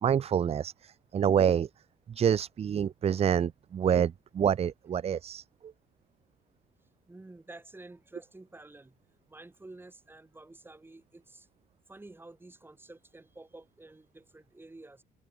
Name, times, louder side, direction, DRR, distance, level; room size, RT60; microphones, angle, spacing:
voice 1, 0.0-0.7 1.1-1.7 2.2-5.4, right 8 dB, 35° right, 0.7 m, -26 dB
voice 2, 7.1-9.0 9.3-11.5 11.9-15.0, right 2 dB, 10° right, 7.1 m, -50 dB
cardioid pair, 110°, 17 cm